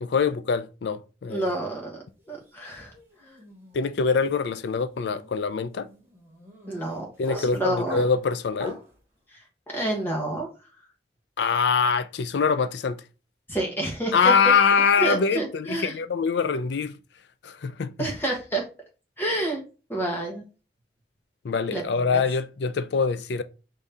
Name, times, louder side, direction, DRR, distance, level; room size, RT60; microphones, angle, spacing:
voice 1, 0.0-1.5 3.7-5.9 7.2-8.8 11.4-13.0 14.1-17.0 17.4-18.1 21.4-23.4, left 5 dB, 70° left, 0.4 m, -24 dB
voice 2, 1.3-2.0 2.3-2.9 6.7-7.1 7.4-8.0 9.7-10.5 13.5-14.3 15.0-15.9 18.0-18.6 19.2-19.6 19.9-20.4 21.7-22.2, right 1 dB, 10° left, 1.2 m, -28 dB
sound 1, 2.2-2.5 2.8-9.0, left 2 dB, 15° right, 1.0 m, -42 dB
5.1 x 2.7 x 3.5 m
head